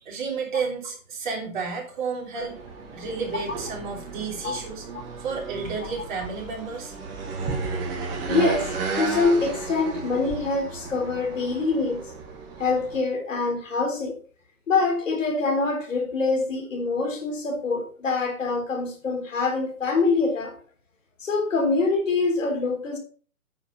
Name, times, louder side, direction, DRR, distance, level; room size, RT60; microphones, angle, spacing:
voice 1, 0.0-2.6 2.9-4.8 5.2-6.9, right 5 dB, 35° right, 3.5 m, -31 dB
sound 1, 2.4-13.0, right 4 dB, 10° right, 1.1 m, -34 dB
voice 2, 8.3-12.1 12.6-14.2 14.7-20.6 21.2-23.0, left 3 dB, 60° left, 3.5 m, -25 dB
9.5 x 6.8 x 5.5 m
hypercardioid pair, 155°, 43 cm